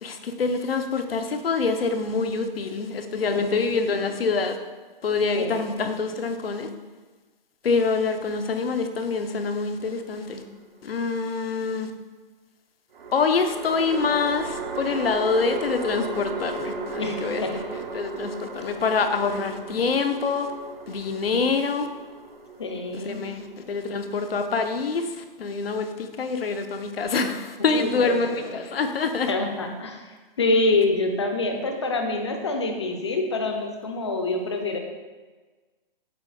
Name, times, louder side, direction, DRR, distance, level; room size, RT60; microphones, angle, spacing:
voice 1, 0.0-4.6 5.0-6.7 7.6-10.4 10.8-11.9 13.1-17.6 17.9-20.5 20.9-21.9 22.9-29.3, left 4 dB, 75° left, 7 dB, 0.9 m, -26 dB
sound 1, 9.8-10.7 12.9-24.3, right 3 dB, 60° right, 1.0 m, -36 dB
voice 2, 17.0-17.5 22.6-23.3 27.7-28.1 29.2-30.0 30.4-34.8, left 2 dB, 30° left, 4 dB, 0.6 m, -26 dB
8.1 x 3.1 x 4.9 m, 1.3 s
hypercardioid pair, 175°, 29 cm